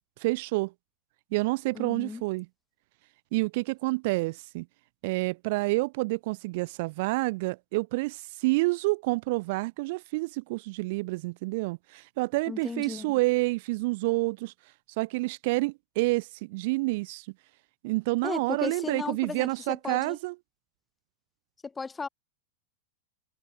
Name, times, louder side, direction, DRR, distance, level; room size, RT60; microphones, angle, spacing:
voice 1, 0.2-0.7 1.3-2.5 3.3-4.7 5.0-14.5 15.0-17.3 17.8-20.3, right 23 dB, 50° right, 0.5 m, -28 dB
voice 2, 1.7-2.2 12.5-13.1 18.2-20.2 21.6-22.1, left 4 dB, 15° left, 1.4 m, -35 dB
figure-of-eight pair, 90°, 0 cm